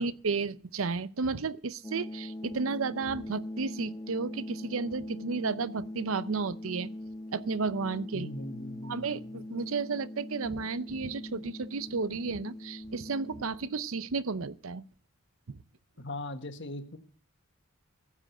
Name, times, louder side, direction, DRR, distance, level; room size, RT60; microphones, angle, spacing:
voice 1, 0.0-6.9 7.3-8.3 8.8-14.8 15.5-15.6, right 4 dB, 80° right, 0.7 m, -33 dB
sound 1, 1.8-13.8, left 1 dB, 20° left, 0.9 m, -42 dB
voice 2, 8.1-9.5 16.0-17.0, left 1 dB, 60° left, 1.6 m, -40 dB
15.0 x 7.6 x 7.8 m
head